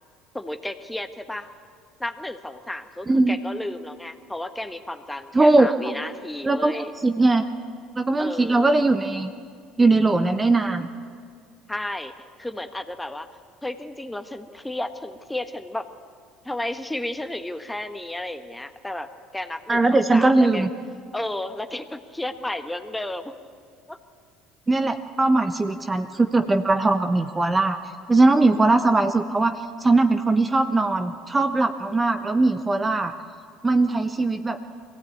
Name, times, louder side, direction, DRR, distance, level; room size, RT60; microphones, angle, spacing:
voice 1, 0.3-1.5 2.0-6.9 8.2-8.7 11.7-12.1 12.4-13.3 13.6-15.9 16.4-20.7 21.1-23.3 23.9-24.0, left 1 dB, 10° left, 8 dB, 1.4 m, -33 dB
voice 2, 3.1-3.4 5.3-5.7 6.4-6.7 7.0-7.4 8.0-9.3 9.8-10.9 19.7-20.7 24.7-27.8 28.1-33.1 33.6-34.6, right 2 dB, 20° right, 8 dB, 1.1 m, -20 dB
22.5 x 16.5 x 8.6 m, 2.2 s
hypercardioid pair, 65°, 0 cm